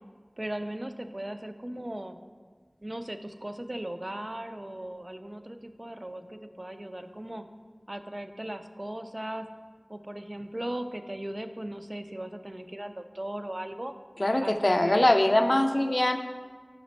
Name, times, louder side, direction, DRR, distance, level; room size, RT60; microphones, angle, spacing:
voice 1, 0.4-2.2 2.8-7.4 7.9-9.5 9.9-13.9 14.4-15.2, right 1 dB, 40° right, 8 dB, 0.4 m, -37 dB
voice 2, 14.2-16.2, left 1 dB, 45° left, 6 dB, 0.4 m, -22 dB
5.2 x 5.0 x 5.1 m, 1.6 s
wide cardioid pair, 45°, 0 cm